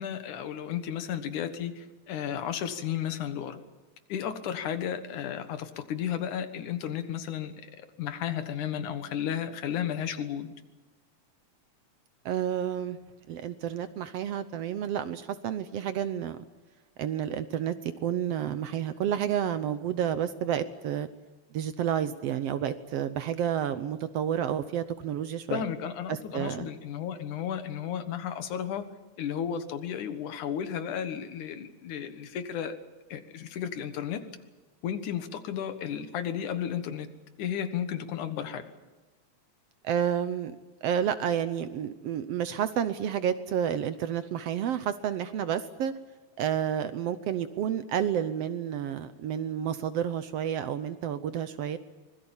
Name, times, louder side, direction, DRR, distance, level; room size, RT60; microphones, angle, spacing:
voice 1, 0.0-3.6 4.1-10.5 25.5-28.9 29.2-32.8 33.1-34.2 34.8-37.1 37.4-38.7, left 9 dB, 85° left, 10 dB, 2.9 m, -33 dB
voice 2, 12.3-13.0 13.3-16.4 17.0-21.1 21.5-25.6 26.1-26.7 39.8-40.6 40.8-45.9 46.4-51.8, right 9 dB, 70° right, 12 dB, 1.6 m, -30 dB
25.0 x 21.0 x 7.2 m, 1.2 s
omnidirectional pair, 3.4 m